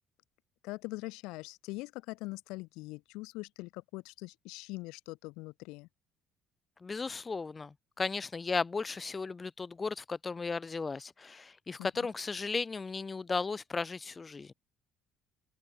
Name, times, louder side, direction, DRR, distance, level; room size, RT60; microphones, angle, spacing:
voice 1, 0.6-5.9 11.8-11.9, left 23 dB, 90° left, 6.2 m, -42 dB
voice 2, 6.8-14.5, left 4 dB, 20° left, 5.3 m, -35 dB
cardioid pair, 120°, 0 cm